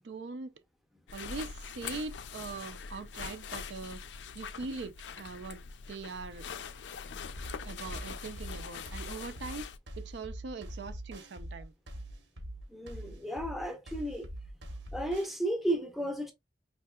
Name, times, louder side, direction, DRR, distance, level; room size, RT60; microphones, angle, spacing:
voice 1, 0.0-0.5 1.1-4.0 4.3-5.6 5.9-6.5 7.6-9.7 10.0-11.7, right 4 dB, 70° right, 0.4 m, -41 dB
sound 1, 1.1-9.8, left 6 dB, 75° left, 0.4 m, -43 dB
sound 2, 7.4-15.4, right 1 dB, 85° right, 1.0 m, -43 dB
voice 2, 12.7-14.3 14.9-16.3, right 1 dB, ahead, 0.6 m, -33 dB
4.4 x 2.8 x 2.2 m
head